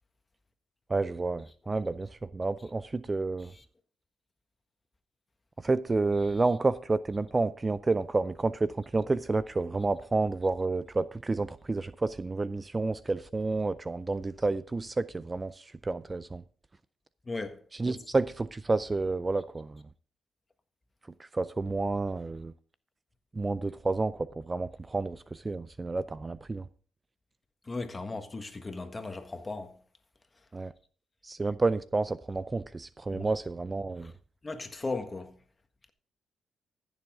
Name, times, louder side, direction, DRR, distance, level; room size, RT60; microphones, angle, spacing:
voice 1, 0.9-3.5 5.6-16.4 17.7-19.8 21.2-22.5 23.3-26.7 30.5-30.7 31.2-34.1, right 3 dB, 25° right, 0.4 m, -30 dB
voice 2, 17.3-18.0 27.7-29.8 33.1-33.3 34.4-35.3, left 3 dB, 30° left, 1.5 m, -37 dB
14.5 x 7.0 x 3.7 m
cardioid pair, 70°, 0 cm